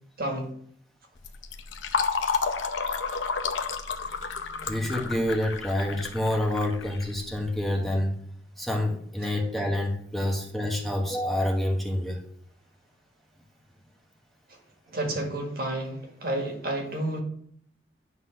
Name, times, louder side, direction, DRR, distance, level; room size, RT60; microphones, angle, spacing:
voice 1, 0.2-0.5 10.2-10.3 14.5-14.6 14.9-17.2, right 1 dB, 55° right, 1.8 m, -31 dB
Fill (with liquid), 1.2-7.6, left 5 dB, 80° left, 0.8 m, -31 dB
voice 2, 4.6-8.1 8.6-12.2, left 1 dB, ahead, 1.1 m, -27 dB
9.8 x 4.0 x 5.7 m
head